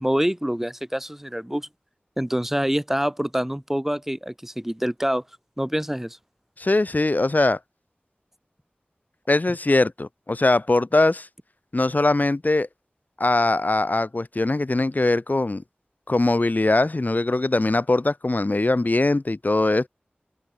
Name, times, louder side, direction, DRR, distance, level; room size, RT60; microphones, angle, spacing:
voice 1, 0.0-1.7 2.2-5.2 5.6-6.2, equal, 10° right, 1.7 m, -26 dB
voice 2, 6.6-7.6 9.3-11.3 11.7-12.7 13.2-15.6 16.1-19.9, left 2 dB, 50° left, 2.2 m, -21 dB
open air
wide cardioid pair, 40°, 4 cm